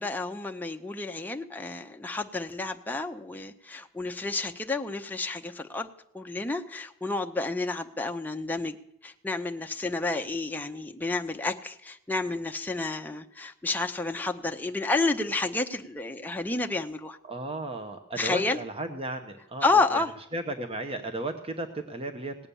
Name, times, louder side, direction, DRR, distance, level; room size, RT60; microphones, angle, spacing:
voice 1, 0.0-8.8 9.0-17.2 18.2-18.6 19.6-20.1, left 3 dB, 10° left, 3 dB, 0.6 m, -30 dB
voice 2, 17.3-20.0 20.3-22.5, right 2 dB, 25° right, 6 dB, 0.9 m, -35 dB
17.5 x 8.6 x 7.0 m, 0.76 s
head